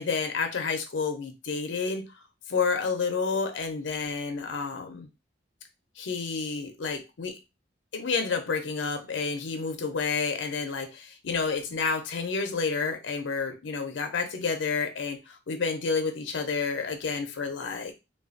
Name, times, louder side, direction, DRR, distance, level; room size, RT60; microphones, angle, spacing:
voice 1, 0.0-2.1 2.5-5.1 6.0-7.4 7.9-17.9, left 5 dB, 80° left, 0.5 m, -30 dB
3.1 x 2.2 x 2.5 m
head